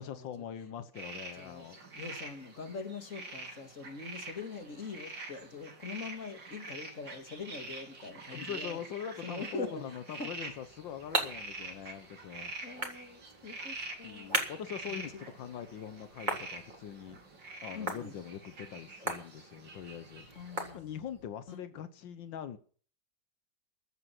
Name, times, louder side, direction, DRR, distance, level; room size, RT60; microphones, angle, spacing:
voice 1, 0.0-1.8 8.3-12.5 14.0-17.2 17.6-20.3 20.7-22.6, left 9 dB, 90° left, 1.8 m, -43 dB
sound 1, 0.9-20.7, right 3 dB, 80° right, 3.9 m, -46 dB
voice 2, 1.3-8.8 9.2-10.3 12.6-14.3 14.9-15.2 17.7-18.1 20.3-20.9 21.5-21.6, left 4 dB, 45° left, 2.6 m, -43 dB
sound 2, 10.4-21.3, right 1 dB, 25° right, 3.6 m, -40 dB
15.5 x 11.5 x 6.0 m
omnidirectional pair, 2.0 m